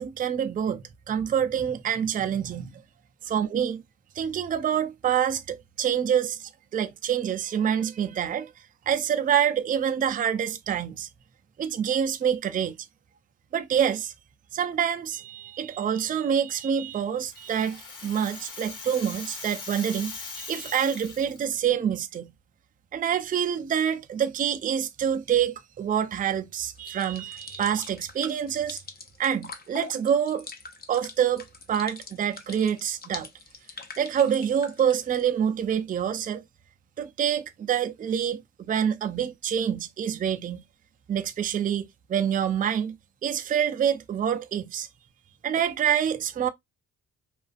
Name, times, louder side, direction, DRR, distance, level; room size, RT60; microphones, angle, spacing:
voice 1, 0.0-2.8 3.2-3.8 4.2-8.5 8.9-11.1 11.6-12.8 13.5-14.1 14.5-22.3 22.9-28.8 29.2-30.5 30.9-33.3 34.0-36.4 37.0-38.4 38.7-40.6 41.1-42.9 43.2-44.9 45.4-46.5, right 8 dB, 25° right, 0.3 m, -26 dB
Rattle (instrument), 16.9-21.7, left 3 dB, 75° left, 1.2 m, -40 dB
sound 1, 26.7-35.2, left 4 dB, 30° left, 0.5 m, -43 dB
2.4 x 2.4 x 2.4 m
cardioid pair, 75°, 32 cm